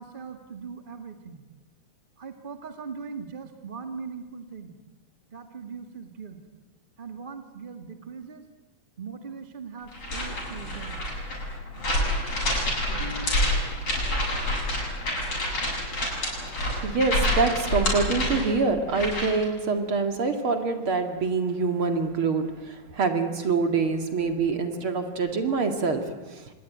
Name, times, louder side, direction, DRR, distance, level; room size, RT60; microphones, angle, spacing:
voice 1, 0.0-1.4 2.2-4.7 5.3-6.4 7.0-8.4 9.0-11.0 12.9-13.8 23.7-23.8, right 5 dB, 20° right, 6 dB, 1.5 m, -40 dB
sound 1, 9.9-19.4, left 1 dB, 50° left, 8.6 m, -28 dB
voice 2, 16.5-26.5, right 4 dB, 50° right, 6 dB, 2.8 m, -26 dB
26.0 x 20.0 x 9.4 m, 1.1 s
omnidirectional pair, 3.3 m